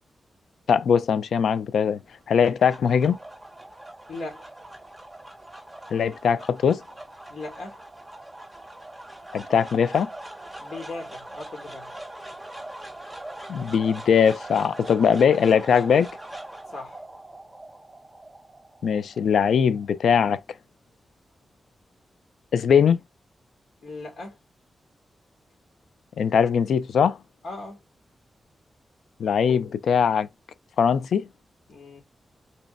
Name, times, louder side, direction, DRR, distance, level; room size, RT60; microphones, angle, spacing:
voice 1, 0.7-2.0 2.3-3.2 5.9-6.8 9.3-10.1 13.5-16.1 18.8-20.4 22.5-23.0 26.2-27.2 29.2-30.3 30.8-31.3, left 7 dB, 90° left, 0.3 m, -21 dB
sound 1, 2.1-20.4, right 1 dB, 5° right, 1.9 m, -42 dB
voice 2, 4.1-4.5 7.3-7.8 10.6-11.9 16.7-17.0 23.8-24.4 27.4-27.8 31.7-32.0, left 2 dB, 65° left, 2.1 m, -38 dB
4.3 x 3.0 x 2.5 m
cardioid pair, 90°, 0 cm